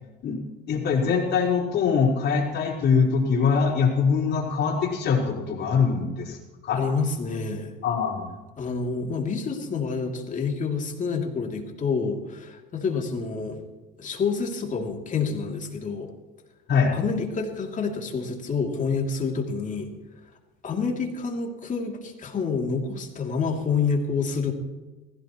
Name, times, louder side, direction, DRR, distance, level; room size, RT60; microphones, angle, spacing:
voice 1, 0.7-6.4 6.6-6.8 7.8-8.3 16.7-16.9, left 5 dB, 60° left, -2 dB, 4.5 m, -23 dB
voice 2, 6.7-7.7 8.6-13.6 14.0-16.1 16.9-19.9 20.6-24.5, left 5 dB, 40° left, 2 dB, 3.0 m, -28 dB
20.5 x 16.0 x 3.1 m, 1.2 s
supercardioid pair, 95°, 20 cm